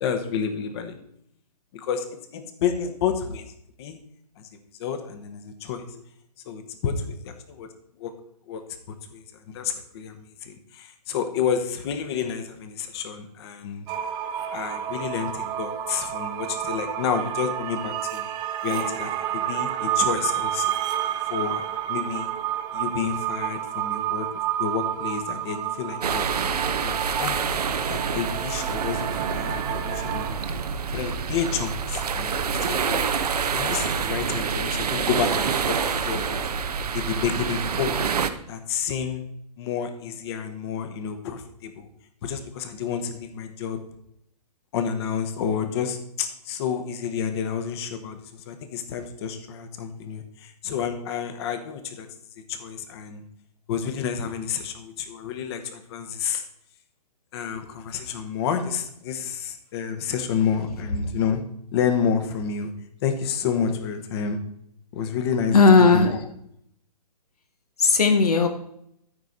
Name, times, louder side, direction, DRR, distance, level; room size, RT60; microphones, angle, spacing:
voice 1, 0.0-1.0 1.7-2.0 2.3-3.4 3.8-4.0 4.8-6.0 6.5-7.7 8.0-8.1 8.5-9.2 9.5-13.9 14.5-18.3 18.6-20.8 21.3-22.3 22.7-24.3 24.6-26.3 26.8-27.4 27.7-30.6 30.9-33.0 33.5-36.4 36.9-38.0 38.5-39.2 39.6-41.9 42.2-43.8 44.7-48.2 48.5-52.1 52.5-53.2 53.7-56.4 57.3-61.4 61.7-62.7 63.0-64.4 64.9-66.2, left 7 dB, 40° left, 8 dB, 1.3 m, -29 dB
sound 1, 13.9-30.3, right 11 dB, 20° right, 0.7 m, -30 dB
sound 2, 26.0-38.3, right 6 dB, 70° right, 0.9 m, -27 dB
voice 2, 65.5-66.2 67.8-68.5, left 4 dB, 65° left, 7 dB, 1.0 m, -16 dB
14.0 x 4.8 x 4.1 m, 0.72 s
figure-of-eight pair, 125°, 21 cm